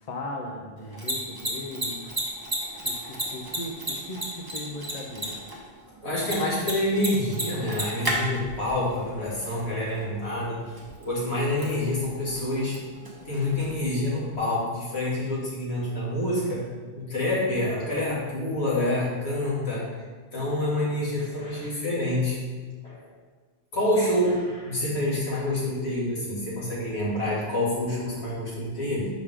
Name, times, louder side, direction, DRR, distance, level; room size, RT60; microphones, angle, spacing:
voice 1, 0.0-2.2 2.8-5.5, left 1 dB, 45° left, 0 dB, 0.8 m, -38 dB
Mechanisms, 0.8-14.4, right 1 dB, 20° right, 1.0 m, -35 dB
voice 2, 6.0-10.7 11.0-12.8 13.2-16.7 16.9-19.8 20.3-22.4 22.8-23.1 23.7-29.1, left 1 dB, 85° left, -7 dB, 2.2 m, -27 dB
6.4 x 5.0 x 3.6 m, 1.4 s
omnidirectional pair, 1.1 m